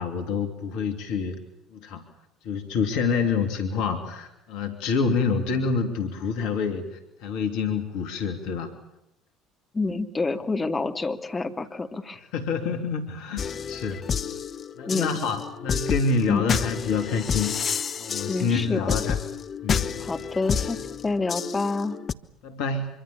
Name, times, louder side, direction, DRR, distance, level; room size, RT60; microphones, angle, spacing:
voice 1, 0.0-1.4 1.7-2.0 2.4-8.7 12.3-14.1 14.8-17.5 18.0-19.2 19.6-19.9 22.4-22.9, left 5 dB, 65° left, 6 dB, 2.9 m, -27 dB
voice 2, 9.7-12.2 14.8-15.2 16.3-16.4 18.3-18.8 20.0-22.0, left 3 dB, 20° left, 6 dB, 2.8 m, -28 dB
sound 1, 13.4-22.1, left 7 dB, 40° left, 1.1 m, -30 dB
25.5 x 24.0 x 7.2 m, 0.83 s
hypercardioid pair, 60°, 0 cm